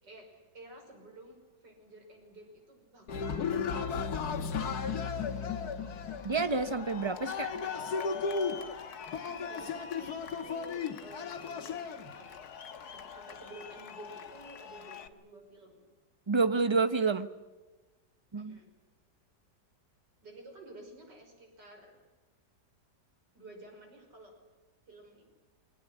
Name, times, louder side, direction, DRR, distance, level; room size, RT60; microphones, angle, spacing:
voice 1, 0.0-3.7 9.3-12.4 12.8-15.8 18.3-18.7 20.2-22.0 23.3-24.4 24.9-25.2, right 2 dB, 75° right, 3 dB, 6.3 m, -52 dB
Cheering, 3.1-15.1, left 5 dB, 65° left, 1.8 m, -36 dB
voice 2, 6.2-7.5 16.3-17.3 18.3-18.6, right 4 dB, 20° right, 11 dB, 0.8 m, -28 dB
23.0 x 19.0 x 10.0 m, 1.2 s
omnidirectional pair, 1.9 m